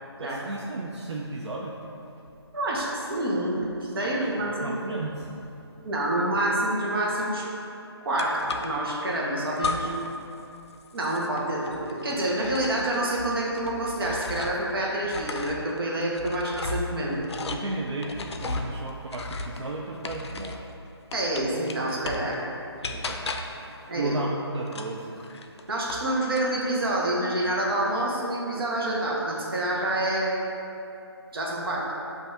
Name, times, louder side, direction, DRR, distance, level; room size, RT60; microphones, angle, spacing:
voice 1, 0.2-1.8 4.0-5.6 9.8-9.9 17.5-20.6 22.8-25.2, right 2 dB, 85° right, -2 dB, 0.4 m, -34 dB
voice 2, 2.5-4.7 5.8-7.5 8.0-9.9 10.9-17.2 21.1-22.4 23.9-24.2 25.7-30.3 31.3-31.8, right 1 dB, 60° right, -3 dB, 1.0 m, -27 dB
sound 1, 8.2-9.0 9.6-10.2 10.4-14.7 15.0-20.7 21.1-22.3 22.8-23.7 24.7-26.1 26.3-26.9, left 3 dB, 75° left, 0.4 m, -35 dB
6.8 x 2.6 x 2.6 m, 2.8 s
figure-of-eight pair, 155°, 14 cm